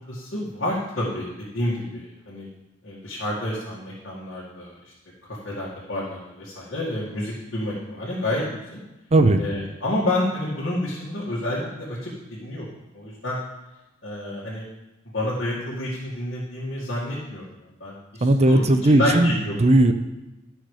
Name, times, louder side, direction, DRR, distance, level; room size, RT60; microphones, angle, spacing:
voice 1, 0.1-2.5 2.8-4.9 5.4-8.4 8.7-8.8 9.4-12.7 12.9-13.4 14.0-14.6 15.1-17.5 17.8-19.6, left 1 dB, 60° left, -7 dB, 2.2 m, -29 dB
voice 2, 9.1-9.4 18.2-19.3 19.6-19.9, right 1 dB, 35° right, 8 dB, 0.6 m, -17 dB
11.5 x 6.3 x 4.9 m, 1.0 s
head